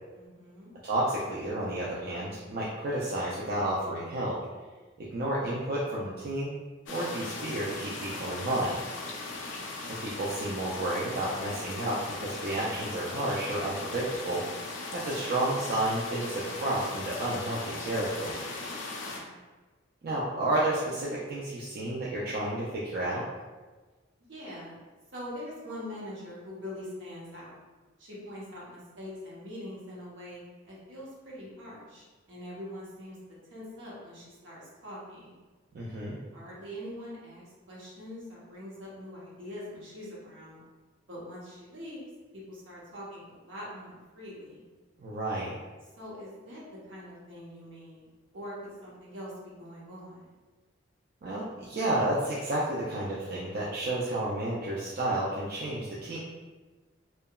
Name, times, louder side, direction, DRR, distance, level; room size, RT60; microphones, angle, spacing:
voice 1, 0.1-0.7 9.4-9.8 18.9-19.3 24.3-24.8 25.1-27.5 28.0-33.2 33.5-35.3 36.3-40.6 41.1-42.1 42.3-44.6 46.0-50.3, left 1 dB, 70° right, -6 dB, 0.9 m, -43 dB
voice 2, 0.8-4.4 5.0-6.5 6.9-8.8 9.9-14.6 14.9-18.4 20.0-23.2 35.7-36.2 45.0-45.5 51.2-56.2, right 1 dB, 50° right, -7 dB, 0.4 m, -31 dB
sound 1, 6.9-19.2, left 3 dB, 65° left, 0.4 m, -39 dB
2.8 x 2.2 x 2.2 m, 1.3 s
head